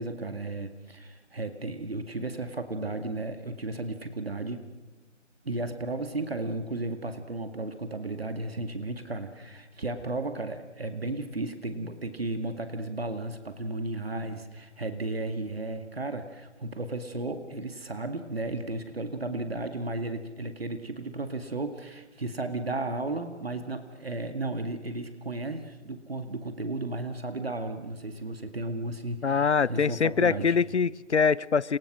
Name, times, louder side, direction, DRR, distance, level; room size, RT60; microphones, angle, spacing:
voice 1, 0.0-4.7 5.4-30.6, right 2 dB, 50° right, 2.2 m, -34 dB
voice 2, 29.2-31.8, left 5 dB, 65° left, 0.7 m, -24 dB
28.5 x 28.5 x 6.2 m
figure-of-eight pair, 175°, 37 cm